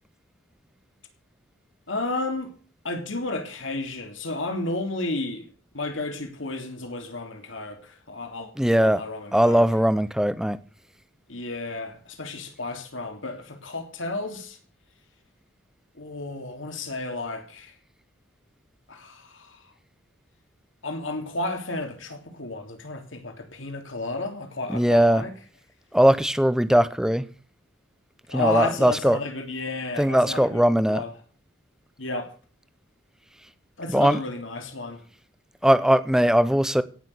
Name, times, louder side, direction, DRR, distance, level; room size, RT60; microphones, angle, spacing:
voice 1, 1.9-2.5 2.8-5.5 5.7-9.6 11.3-14.6 15.9-17.7 18.9-19.7 20.8-25.3 28.3-31.1 32.0-32.3 33.8-35.0, left 2 dB, 75° left, 3.2 m, -32 dB
voice 2, 8.6-9.0 9.3-10.6 24.7-25.2 25.9-27.2 28.3-29.2 30.0-31.0 33.9-34.2 35.6-36.8, equal, 5° right, 0.9 m, -20 dB
17.5 x 6.6 x 8.0 m
head